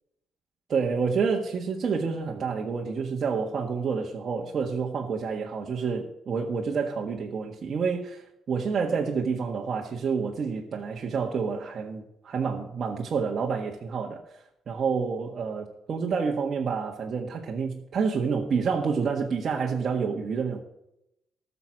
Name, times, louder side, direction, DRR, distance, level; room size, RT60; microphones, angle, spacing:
voice 1, 0.7-14.2 14.7-20.6, right 5 dB, 50° right, -1 dB, 1.7 m, -28 dB
13.5 x 7.0 x 6.1 m, 0.81 s
cardioid pair, 90°, 0 cm